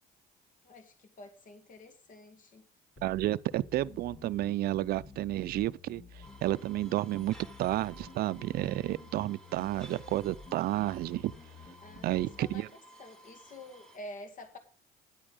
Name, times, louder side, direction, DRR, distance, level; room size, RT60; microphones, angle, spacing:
voice 1, 0.6-2.6 11.8-12.6 13.0-14.6, left 1 dB, 50° left, 2.2 m, -48 dB
sound 1, 3.0-12.6, left 5 dB, 30° left, 0.9 m, -51 dB
voice 2, 3.0-6.0 6.4-11.3 12.0-12.7, right 15 dB, 65° right, 0.5 m, -31 dB
sound 2, 6.2-14.0, right 2 dB, 5° left, 1.9 m, -55 dB
10.5 x 8.8 x 5.1 m
cardioid pair, 110°, 17 cm